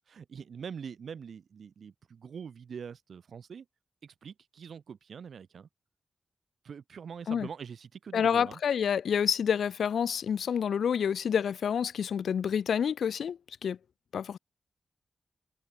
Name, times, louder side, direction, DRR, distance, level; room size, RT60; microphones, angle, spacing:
voice 1, 0.1-3.7 4.0-5.7 6.6-8.6, right 7 dB, 80° right, 5.5 m, -44 dB
voice 2, 8.1-13.8 14.1-14.4, left 7 dB, 85° left, 2.3 m, -28 dB
cardioid pair, 50°, 0 cm